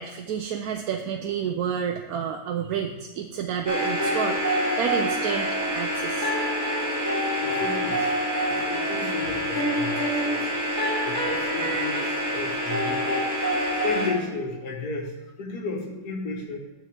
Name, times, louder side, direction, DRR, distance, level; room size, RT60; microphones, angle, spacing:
voice 1, 0.0-5.5 5.7-6.3, right 7 dB, 75° right, 4 dB, 1.1 m, -30 dB
sound 1, 3.7-14.1, equal, 10° right, 2.7 m, -26 dB
voice 2, 7.4-10.5 11.0-13.6 13.8-16.6, left 3 dB, 90° left, 1 dB, 1.8 m, -34 dB
9.1 x 4.3 x 7.2 m, 1.1 s
omnidirectional pair, 1.6 m